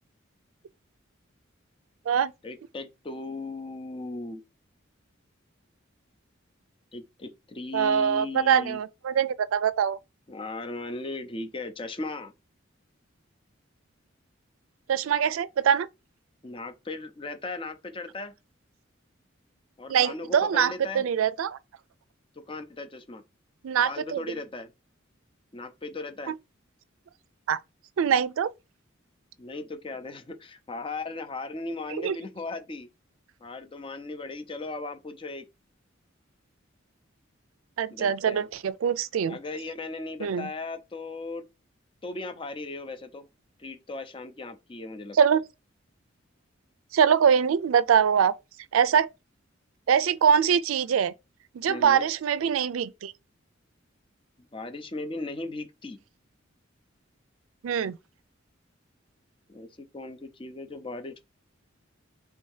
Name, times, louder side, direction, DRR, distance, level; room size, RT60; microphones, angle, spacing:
voice 1, 2.4-4.4 6.9-8.8 10.3-12.3 16.4-18.3 19.8-21.0 22.4-23.2 23.8-24.7 25.5-26.3 29.4-32.9 33.4-35.5 37.9-38.5 39.3-41.4 42.0-43.3 43.6-45.2 51.7-52.1 54.5-56.0 59.5-61.2, left 2 dB, 25° left, 0.5 m, -37 dB
voice 2, 7.7-10.0 14.9-15.9 19.9-21.6 23.6-24.2 26.3-26.4 27.5-27.6 28.0-28.5 32.0-32.2 37.8-39.4 40.2-40.5 45.1-45.4 46.9-48.3 48.7-49.1 49.9-51.1 51.5-53.1 57.6-58.0, right 7 dB, 90° right, 0.4 m, -23 dB
3.5 x 2.7 x 4.7 m
head